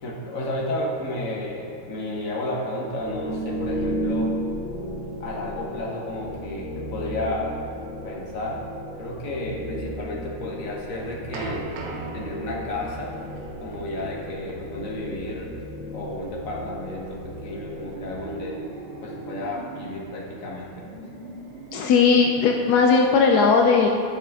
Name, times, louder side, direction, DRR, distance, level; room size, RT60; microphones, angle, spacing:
voice 1, 0.0-4.3 5.2-7.5 8.0-8.6 9.0-11.7 12.1-13.2 13.6-15.5 15.9-18.6 19.0-20.9, left 1 dB, 45° left, -2 dB, 1.5 m, -32 dB
sound 1, 3.0-18.7, equal, 90° left, 2.2 m, -34 dB
sound 2, 10.7-17.5, right 3 dB, 80° right, 1.8 m, -39 dB
sound 3, 17.7-20.0 20.6-22.8, right 3 dB, 65° right, 2.2 m, -40 dB
voice 2, 21.7-23.9, left 5 dB, 75° left, 1 dB, 0.9 m, -18 dB
11.5 x 6.3 x 3.6 m, 2.8 s
omnidirectional pair, 2.3 m